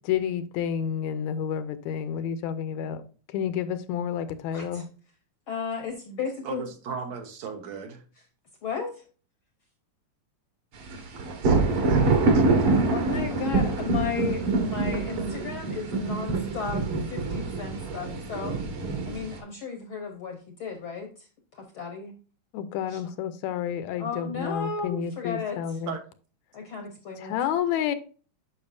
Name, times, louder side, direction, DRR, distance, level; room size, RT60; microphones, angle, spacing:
voice 1, 0.1-3.0 3.3-4.9 22.5-25.9 27.2-27.9, left 8 dB, 80° left, 1.9 m, -30 dB
voice 2, 4.5-4.8 5.5-6.6 8.6-9.0 12.9-18.6 19.0-22.1 22.9-23.1 24.0-25.8 26.5-27.4, left 6 dB, 65° left, 1.3 m, -34 dB
voice 3, 6.4-8.0 11.1-12.4 25.9-26.0, right 6 dB, 70° right, 2.3 m, -38 dB
sound 1, 10.9-19.4, right 3 dB, 55° right, 2.0 m, -25 dB
8.8 x 5.8 x 2.6 m
omnidirectional pair, 3.4 m